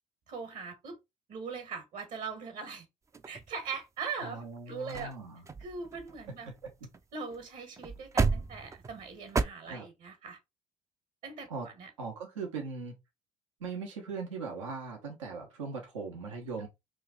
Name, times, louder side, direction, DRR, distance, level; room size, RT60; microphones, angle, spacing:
voice 1, 0.3-1.0 1.3-2.9 3.2-5.1 5.6-6.5 7.1-10.4 11.2-11.9 16.6-16.7, right 5 dB, 60° right, 1.2 m, -41 dB
sound 1, 3.1-4.0 4.6-4.7 4.9-5.1 5.5-7.0 7.3-7.4 7.8-9.4, right 4 dB, 20° right, 0.4 m, -33 dB
voice 2, 4.2-5.4 6.4-6.5 6.8-6.9 9.7-9.9 11.5-11.7 12.0-12.9 13.6-16.7, right 4 dB, 90° right, 0.9 m, -39 dB
3.1 x 2.4 x 3.6 m
hypercardioid pair, 65°, 15 cm